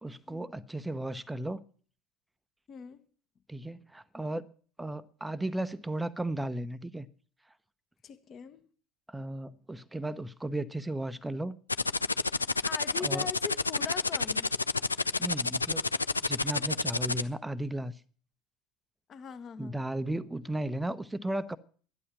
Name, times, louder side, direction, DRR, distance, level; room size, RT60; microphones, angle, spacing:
voice 1, 0.0-1.6 3.5-4.4 4.8-7.1 9.1-11.6 13.0-13.3 15.2-15.8 16.3-18.0 19.6-21.6, right 1 dB, 10° right, 0.8 m, -35 dB
voice 2, 2.7-3.0 8.0-8.6 12.6-14.5 19.1-19.8, left 7 dB, 35° left, 1.5 m, -41 dB
sound 1, 11.7-17.2, left 3 dB, 85° left, 0.5 m, -29 dB
13.0 x 11.5 x 6.0 m
figure-of-eight pair, 70°, 0 cm